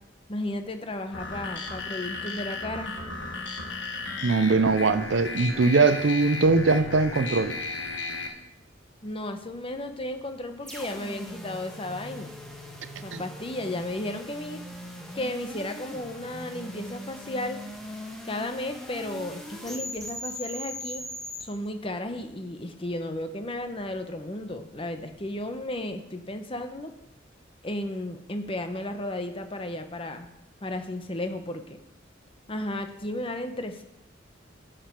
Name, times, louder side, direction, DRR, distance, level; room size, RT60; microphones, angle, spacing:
voice 1, 0.3-2.9 9.0-12.3 13.0-14.6 15.1-17.6 18.2-21.0 21.4-26.9 27.6-30.3 30.6-31.8 32.5-33.8, left 1 dB, 30° left, 0.8 m, -34 dB
sound 1, 1.1-8.3, left 3 dB, 65° left, 1.5 m, -35 dB
voice 2, 4.2-7.6 13.1-13.2, right 3 dB, 70° right, 0.5 m, -21 dB
sound 2, 10.6-21.4, equal, 5° left, 1.4 m, -40 dB
11.5 x 7.6 x 4.5 m
head